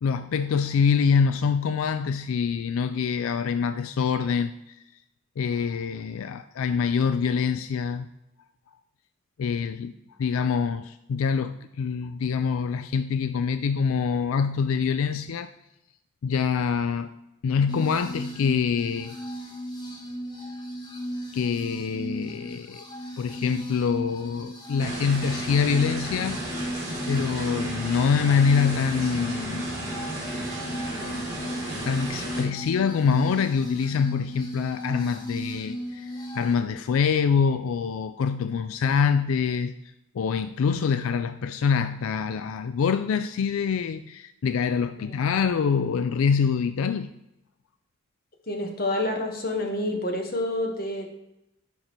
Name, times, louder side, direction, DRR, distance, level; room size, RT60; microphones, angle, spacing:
voice 1, 0.0-4.8 5.4-8.1 9.4-9.9 10.2-15.5 16.2-17.1 17.4-19.2 21.3-22.8 23.2-26.5 27.1-29.7 31.8-39.7 40.1-47.1, left 6 dB, 85° left, 11 dB, 0.4 m, -25 dB
sound 1, 17.7-36.6, equal, 20° left, 1.1 m, -36 dB
sound 2, 24.8-32.4, right 1 dB, 15° right, 2.6 m, -34 dB
voice 2, 48.5-51.1, left 1 dB, 45° left, 3 dB, 1.3 m, -28 dB
10.5 x 5.3 x 3.0 m, 0.88 s
head